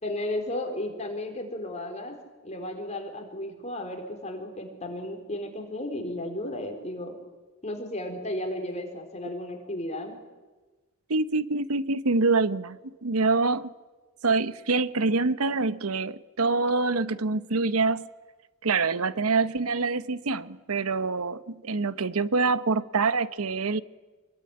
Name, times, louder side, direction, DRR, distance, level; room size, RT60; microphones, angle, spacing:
voice 1, 0.0-2.2 2.4-7.2 7.6-10.2, left 1 dB, 30° left, 4.5 m, -34 dB
voice 2, 11.1-13.7 14.2-18.1 18.6-23.8, right 3 dB, 90° right, 1.0 m, -25 dB
27.0 x 22.0 x 10.0 m
head